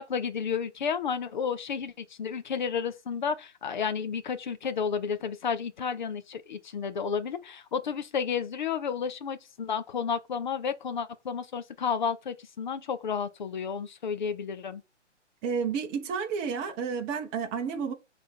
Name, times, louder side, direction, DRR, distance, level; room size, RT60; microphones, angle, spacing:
voice 1, 0.0-14.8, left 6 dB, 40° left, 1.0 m, -32 dB
voice 2, 15.4-17.9, right 6 dB, 15° right, 1.1 m, -31 dB
9.5 x 3.8 x 5.8 m
figure-of-eight pair, 140°, 36 cm